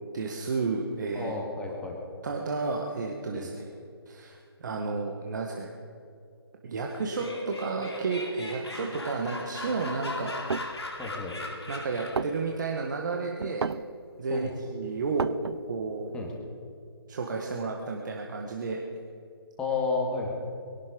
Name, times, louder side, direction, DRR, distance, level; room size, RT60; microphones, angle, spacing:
voice 1, 0.0-1.3 2.2-3.7 4.1-5.7 6.6-10.3 11.7-13.6 14.2-15.3 15.7-16.1 17.1-18.8, right 4 dB, 45° right, 1 dB, 1.6 m, -32 dB
voice 2, 1.1-2.0 3.3-3.5 11.0-11.3 14.3-14.5 16.1-16.3 19.6-20.3, left 4 dB, 5° left, -1 dB, 2.0 m, -31 dB
Laughter, 6.9-12.4, left 2 dB, 80° left, 3.7 m, -38 dB
sound 1, 10.3-10.8 11.5-11.6 11.9-12.0 12.2-12.8 13.4-13.9 14.4-14.5 14.7-15.8, right 5 dB, 75° right, 0.5 m, -32 dB
22.0 x 12.0 x 5.3 m, 2.5 s
figure-of-eight pair, 150°, 14 cm